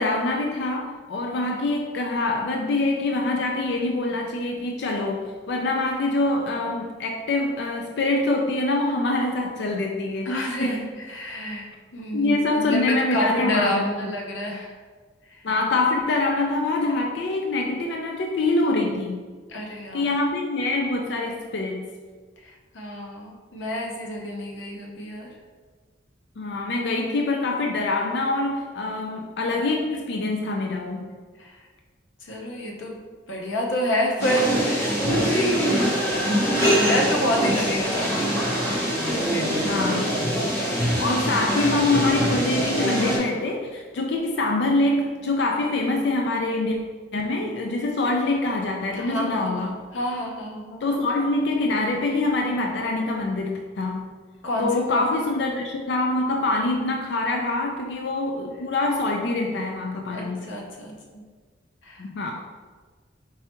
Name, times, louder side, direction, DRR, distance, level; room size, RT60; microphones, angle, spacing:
voice 1, 0.0-10.3 10.6-10.8 12.1-13.9 15.4-19.2 19.9-21.9 26.4-31.1 39.6-40.1 41.0-46.8 47.1-49.8 50.8-54.1 54.6-60.5 62.0-62.3, left 2 dB, 60° left, 1 dB, 0.4 m, -25 dB
voice 2, 1.2-1.6 10.2-11.7 11.9-14.7 15.3-15.4 19.5-20.0 22.4-25.3 31.4-31.6 32.2-33.0 33.3-38.5 39.1-39.6 40.5-41.0 48.9-50.8 54.4-55.3 60.1-61.2 61.8-62.0, equal, 80° left, 0 dB, 0.8 m, -29 dB
sound 1, 34.2-43.2, equal, 15° left, 1.1 m, -23 dB
4.6 x 3.3 x 2.9 m, 1.5 s
head